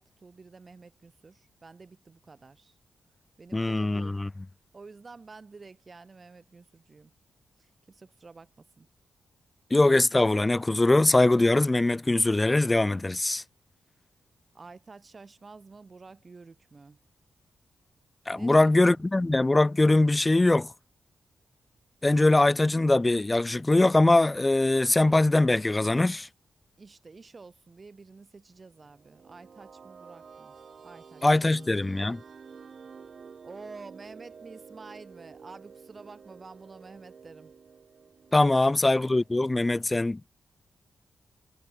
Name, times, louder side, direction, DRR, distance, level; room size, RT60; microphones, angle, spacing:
voice 1, 0.0-2.8 3.4-4.2 4.7-7.1 7.6-8.9 14.5-17.0 18.3-19.1 26.8-30.6 30.8-31.5 33.4-37.5, right 4 dB, 40° right, 2.0 m, -49 dB
voice 2, 3.5-4.3 9.7-13.4 18.3-20.7 22.0-26.3 31.2-32.2 38.3-40.2, left 2 dB, 20° left, 0.6 m, -22 dB
sound 1, 28.8-39.6, right 6 dB, 55° right, 1.8 m, -50 dB
cardioid pair, 70°, 0 cm